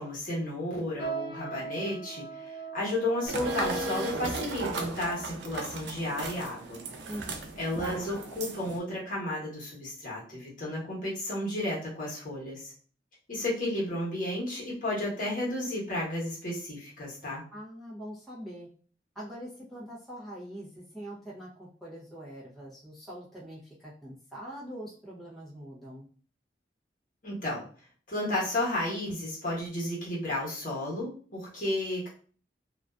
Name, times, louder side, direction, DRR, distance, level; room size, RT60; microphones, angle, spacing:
voice 1, 0.0-6.8 7.6-12.7 13.3-17.4 27.2-27.6 28.1-32.1, left 1 dB, 50° left, -5 dB, 1.0 m, -33 dB
sound 1, 1.0-6.7 7.3-7.5 8.2-8.5 8.9-9.1 9.8-9.9, right 5 dB, 85° left, 0.8 m, -42 dB
sound 2, 3.3-8.8, right 3 dB, 85° right, 0.4 m, -35 dB
voice 2, 7.1-7.5 17.5-18.7 19.1-26.1, equal, ahead, -8 dB, 0.6 m, -43 dB
2.4 x 2.3 x 2.2 m, 0.43 s
head